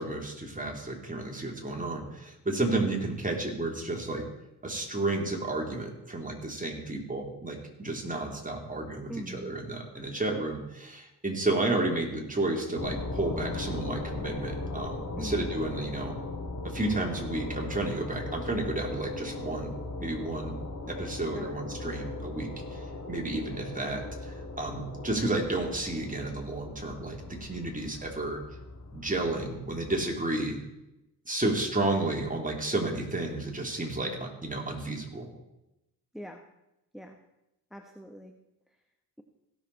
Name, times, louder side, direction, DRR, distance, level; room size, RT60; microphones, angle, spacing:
voice 1, 0.0-4.3 4.6-16.1 16.6-20.5 20.9-28.4 28.9-30.6 31.2-35.3, right 2 dB, 20° right, 0 dB, 3.2 m, -32 dB
voice 2, 9.1-9.6 15.2-15.5 21.3-21.5 36.1-36.4 36.9-37.2 37.7-38.3, equal, ahead, 5 dB, 1.1 m, -42 dB
sound 1, 12.8-30.2, left 2 dB, 45° left, 2.9 m, -38 dB
16.5 x 6.7 x 4.2 m, 0.91 s
supercardioid pair, 45°, 38 cm